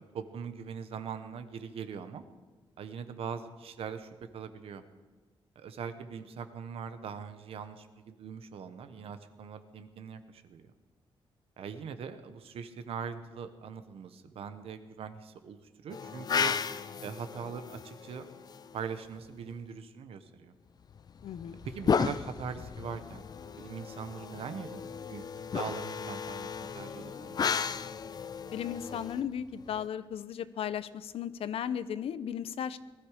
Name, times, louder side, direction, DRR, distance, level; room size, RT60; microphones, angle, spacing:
voice 1, 0.0-2.2 2.8-4.8 5.5-10.7 11.6-16.5 17.0-18.3 18.7-20.5 21.6-23.2 23.6-25.2 25.5-27.6, right 6 dB, 85° right, 10 dB, 1.1 m, -41 dB
sound 1, 15.9-19.1 20.9-29.9, left 6 dB, 45° left, 0.5 m, -35 dB
voice 2, 21.2-21.6 28.5-32.8, left 9 dB, 80° left, 15 dB, 0.6 m, -35 dB
19.0 x 13.0 x 5.0 m, 1.3 s
cardioid pair, 120°, 10 cm